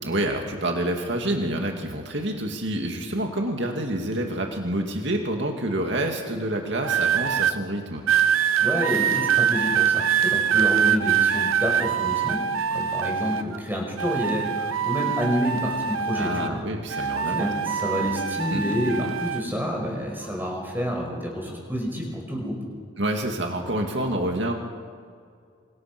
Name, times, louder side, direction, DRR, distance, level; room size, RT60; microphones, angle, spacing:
voice 1, 0.0-8.0 16.1-17.5 18.0-18.1 18.5-18.6 23.0-24.5, right 1 dB, 55° right, 2 dB, 2.5 m, -28 dB
sound 1, 6.8-7.5 8.1-13.6 14.0-16.6 16.9-19.4 20.2-20.5, right 8 dB, 85° right, 1.0 m, -24 dB
voice 2, 8.6-12.4 12.7-16.6 16.9-22.6, equal, 10° right, -1 dB, 5.9 m, -28 dB
27.5 x 27.0 x 6.3 m, 2.2 s
head